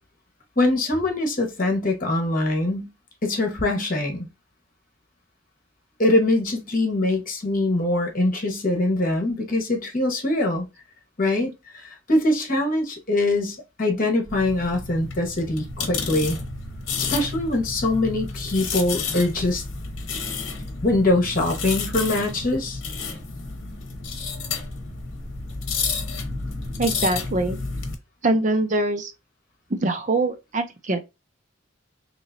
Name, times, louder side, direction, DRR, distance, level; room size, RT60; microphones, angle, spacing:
voice 1, 0.6-2.9 3.2-4.3 6.0-10.6 11.2-16.4 17.0-19.6 20.8-22.8, left 2 dB, 45° left, 1.3 m, -23 dB
sound 1, 14.3-27.9, left 4 dB, 70° left, 1.0 m, -31 dB
voice 2, 26.8-27.6 28.2-29.1 29.7-31.0, right 2 dB, 40° right, 0.5 m, -23 dB
3.8 x 3.0 x 2.6 m
head